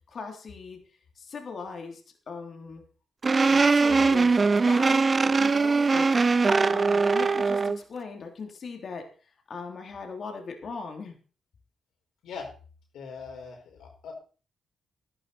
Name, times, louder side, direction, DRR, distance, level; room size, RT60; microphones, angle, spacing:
voice 1, 0.1-0.8 1.2-2.0 2.3-2.8 3.4-4.3 4.7-6.1 6.7-9.1 9.5-11.2, left 4 dB, 60° left, 3 dB, 3.4 m, -39 dB
sound 1, 3.2-7.8, right 4 dB, 40° right, 0.6 m, -21 dB
voice 2, 12.9-14.1, left 5 dB, 80° left, 1 dB, 5.2 m, -41 dB
12.5 x 12.5 x 4.3 m, 0.38 s
supercardioid pair, 50°, 0 cm